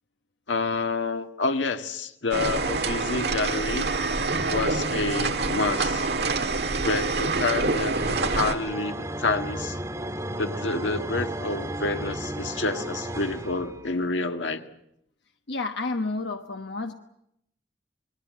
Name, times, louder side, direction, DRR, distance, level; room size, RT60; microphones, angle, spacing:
voice 1, 0.5-3.9 4.5-6.1 6.7-9.8 10.4-14.6, left 3 dB, 90° left, 6 dB, 1.7 m, -28 dB
sound 1, 2.3-8.5, right 3 dB, 60° right, 1.8 m, -26 dB
sound 2, 7.9-13.9, right 1 dB, 15° right, 1.7 m, -34 dB
voice 2, 15.5-16.9, left 3 dB, 70° left, 5 dB, 1.2 m, -30 dB
28.0 x 20.5 x 7.6 m, 0.76 s
head